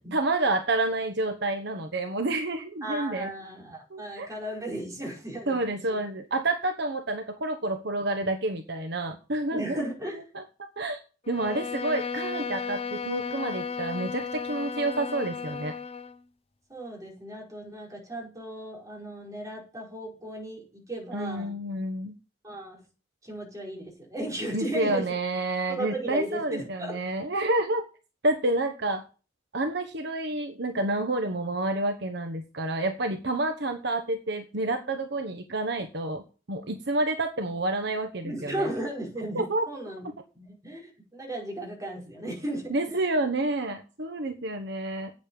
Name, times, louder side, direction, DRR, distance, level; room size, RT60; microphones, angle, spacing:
voice 1, 0.1-3.3 3.9-4.3 5.5-9.9 10.1-10.4 10.8-11.0 11.3-15.7 21.1-22.2 24.5-27.8 28.2-29.0 29.5-36.2 36.5-38.7 39.3-39.6 42.7-45.1, right 2 dB, 65° right, 6 dB, 1.3 m, -29 dB
voice 2, 2.8-5.8 9.5-10.2 16.7-21.6 22.4-22.8 23.2-25.1 25.7-27.0 38.2-43.2, right 1 dB, 20° right, -2 dB, 5.2 m, -36 dB
Bowed string instrument, 11.2-16.2, left 5 dB, 35° left, 0.7 m, -34 dB
8.7 x 7.4 x 8.9 m, 0.35 s
head